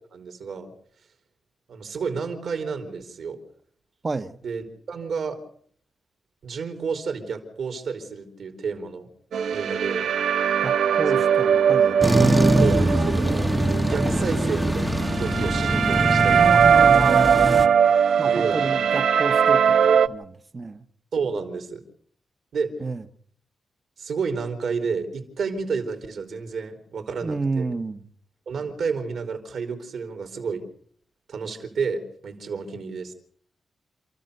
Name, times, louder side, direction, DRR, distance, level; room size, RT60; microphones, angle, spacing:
voice 1, 0.1-0.7 1.7-3.4 4.4-5.4 6.4-9.1 9.5-10.1 11.1-11.2 12.6-13.5 13.8-16.5 18.3-18.8 21.1-21.8 22.5-22.8 24.0-27.7 28.5-30.6 31.3-33.1, right 5 dB, 70° right, 3.8 m, -30 dB
voice 2, 4.0-4.4 10.6-12.0 16.4-17.9 18.2-19.7 20.0-20.8 22.8-23.0 27.2-28.1, right 3 dB, 30° right, 1.1 m, -30 dB
sound 1, 9.3-20.1, right 7 dB, 85° right, 0.9 m, -20 dB
sound 2, 12.0-17.7, right 1 dB, ahead, 1.0 m, -22 dB
28.5 x 14.0 x 6.7 m
wide cardioid pair, 140°, 0 cm